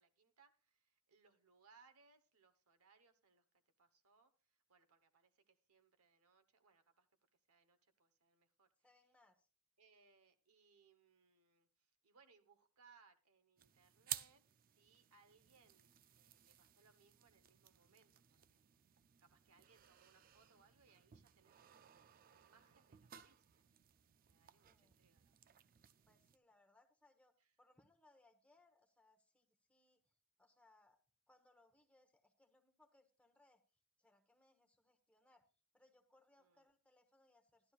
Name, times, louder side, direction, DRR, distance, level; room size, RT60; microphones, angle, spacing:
voice 1, 0.0-3.4 3.8-7.1 7.5-8.7 9.8-14.4 14.8-18.6 19.2-23.7 24.3-25.4 27.4-27.5 36.4-36.7, right 5 dB, 75° right, 8 dB, 1.0 m, -72 dB
voice 2, 8.8-9.5 24.4-25.0 26.1-27.3 27.6-31.0 31.3-33.6 34.0-35.5 35.7-37.7, left 2 dB, 5° left, 5 dB, 1.0 m, -73 dB
sound 1, 13.6-26.4, right 11 dB, 40° right, 0.4 m, -55 dB
13.5 x 11.0 x 2.4 m, 0.35 s
head